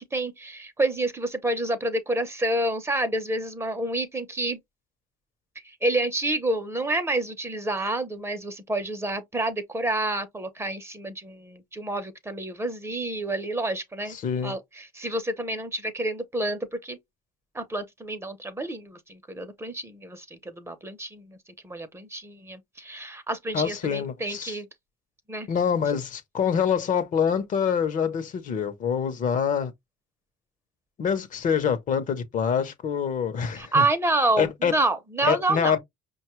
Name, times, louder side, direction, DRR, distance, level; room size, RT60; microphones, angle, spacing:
voice 1, 0.0-4.6 5.6-14.2 14.4-17.0 17.5-21.4 21.6-24.7 25.3-25.5 33.6-35.8, right 2 dB, 15° right, 0.7 m, -28 dB
voice 2, 14.1-14.5 23.5-24.6 25.5-29.7 31.0-33.8 34.4-34.7 35.2-35.8, left 7 dB, 50° left, 0.7 m, -25 dB
5.3 x 2.3 x 3.0 m
cardioid pair, 110°, 17 cm